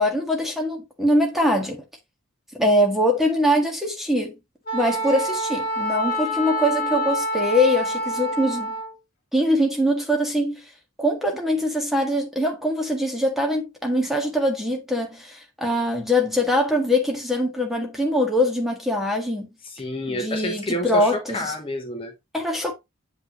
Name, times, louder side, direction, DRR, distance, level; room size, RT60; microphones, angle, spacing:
voice 1, 0.0-1.8 2.5-4.4 4.7-8.7 9.3-10.6 11.0-19.5 20.1-21.5 22.3-22.7, left 1 dB, ahead, 1.6 m, -23 dB
Wind instrument woodwind instrument, 4.7-8.9, equal, 40° left, 2.0 m, -27 dB
voice 2, 19.6-22.1, left 1 dB, 25° left, 1.1 m, -29 dB
8.0 x 5.3 x 3.0 m
head